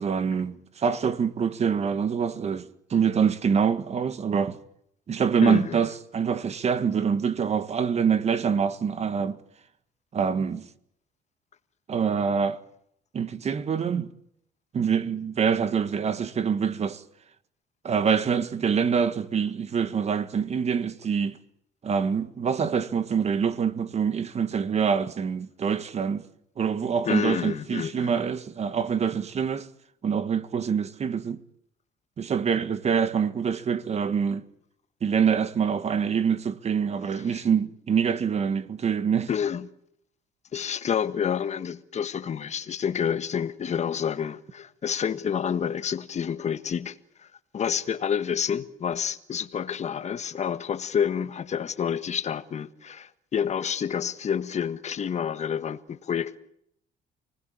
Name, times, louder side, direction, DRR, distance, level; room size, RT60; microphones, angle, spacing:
voice 1, 0.0-4.6 5.1-9.4 10.1-10.7 11.9-12.6 13.1-14.1 14.7-17.0 17.8-21.4 21.8-26.2 26.6-29.7 30.0-31.4 32.2-34.4 35.0-39.3, right 6 dB, 40° right, 1.8 m, -25 dB
voice 2, 5.4-5.8 27.0-28.1 37.3-37.4 39.3-39.7 40.5-47.3 47.5-56.4, left 8 dB, 40° left, 1.5 m, -29 dB
28.5 x 20.0 x 8.8 m
cardioid pair, 110°, 17 cm